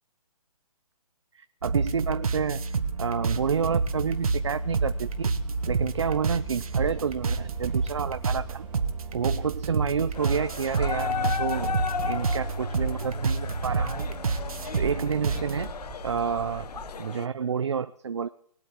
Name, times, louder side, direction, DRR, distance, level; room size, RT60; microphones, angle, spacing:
voice 1, 1.3-2.6 3.0-5.3 5.7-8.7 9.1-11.7 12.0-14.1 14.8-15.7 16.0-16.7 17.0-18.3, right 6 dB, 50° right, 10 dB, 0.5 m, -29 dB
sound 1, 1.6-15.7, right 4 dB, 65° right, 1.3 m, -29 dB
sound 2, 3.4-16.9, right 3 dB, 5° right, 1.9 m, -43 dB
sound 3, 10.1-17.3, left 7 dB, 85° left, 0.7 m, -35 dB
20.5 x 8.4 x 4.4 m, 0.62 s
hypercardioid pair, 180°, 20 cm